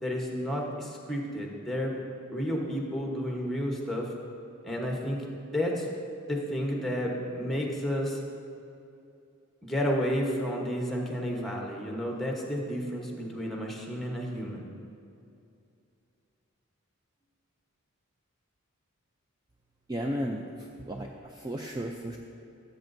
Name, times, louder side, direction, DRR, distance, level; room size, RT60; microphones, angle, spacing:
voice 1, 0.0-2.0 2.3-4.1 4.6-5.3 5.5-5.9 6.3-8.2 9.6-14.6, equal, ahead, -1 dB, 1.0 m, -31 dB
voice 2, 19.9-22.2, equal, 20° right, 1 dB, 0.3 m, -34 dB
14.5 x 7.9 x 2.6 m, 2.6 s
head